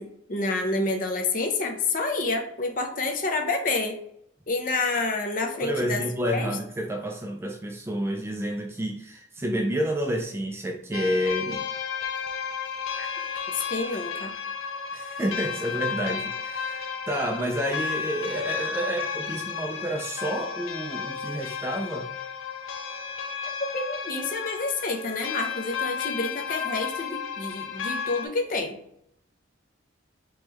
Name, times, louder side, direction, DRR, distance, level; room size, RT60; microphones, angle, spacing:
voice 1, 0.0-4.0 4.5-6.0 6.3-6.5 13.0-13.1 13.5-14.3 23.7-28.8, left 3 dB, 45° left, 4 dB, 0.6 m, -28 dB
voice 2, 5.5-11.7 14.9-22.1, equal, 15° right, 2 dB, 0.3 m, -29 dB
sound 1, 10.9-28.3, left 6 dB, 85° left, 0.5 m, -33 dB
3.7 x 3.0 x 2.9 m, 0.75 s
head